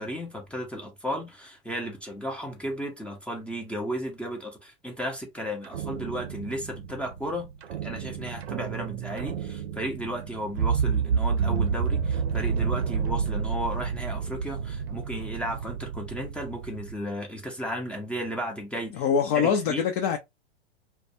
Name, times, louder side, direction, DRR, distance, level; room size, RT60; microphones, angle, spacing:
voice 1, 0.0-7.5 7.8-19.0 19.3-19.8, equal, 5° left, 0.6 m, -34 dB
sound 1, 5.6-16.9, right 6 dB, 70° right, 0.6 m, -30 dB
voice 2, 18.9-20.2, left 7 dB, 45° left, 0.5 m, -24 dB
2.3 x 2.2 x 2.6 m
hypercardioid pair, 110°, 33 cm